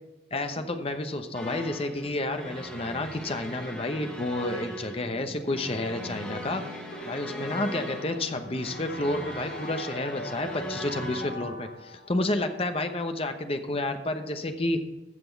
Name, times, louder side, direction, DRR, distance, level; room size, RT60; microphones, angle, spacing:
voice 1, 0.3-6.6 7.0-14.8, left 2 dB, 30° left, 7 dB, 0.9 m, -30 dB
sound 1, 1.3-11.3, equal, 5° left, 1.3 m, -40 dB
sound 2, 5.9-12.9, left 1 dB, 60° left, 0.9 m, -42 dB
15.0 x 6.1 x 4.6 m, 1.1 s
head